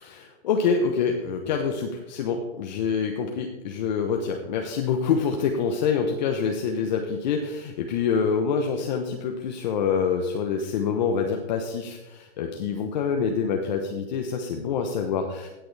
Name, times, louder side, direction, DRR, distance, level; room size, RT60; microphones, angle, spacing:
voice 1, 0.0-15.5, left 6 dB, 45° left, 3 dB, 1.0 m, -26 dB
16.5 x 6.8 x 3.4 m, 1.0 s
hypercardioid pair, 165°, 31 cm